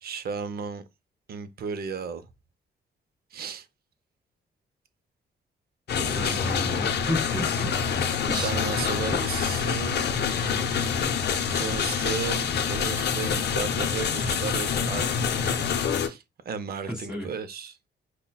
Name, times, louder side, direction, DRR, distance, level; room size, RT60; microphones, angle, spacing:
voice 1, 0.0-0.8 1.3-2.3 3.3-3.7 6.0-6.4 8.3-10.4 11.4-15.3 16.0-17.9, right 6 dB, 55° right, 0.5 m, -34 dB
sound 1, 5.9-16.1, left 6 dB, 60° left, 0.6 m, -26 dB
voice 2, 6.2-7.7 8.3-8.5 9.1-9.2 16.9-17.3, equal, 5° right, 1.7 m, -32 dB
5.4 x 2.2 x 2.2 m
cardioid pair, 105°, 19 cm